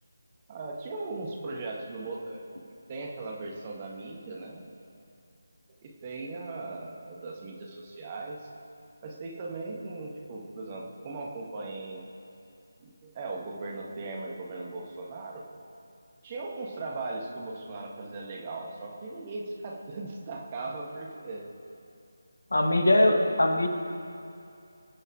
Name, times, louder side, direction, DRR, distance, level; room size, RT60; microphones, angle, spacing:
voice 1, 0.5-2.5 2.9-4.7 5.8-8.5 9.0-12.1 12.8-15.6 16.2-21.5 22.9-23.4, right 3 dB, 25° right, 0 dB, 1.7 m, -38 dB
voice 2, 22.5-23.7, left 1 dB, 60° left, 5 dB, 1.6 m, -21 dB
23.0 x 8.7 x 4.8 m, 2.6 s
figure-of-eight pair, 160°, 0 cm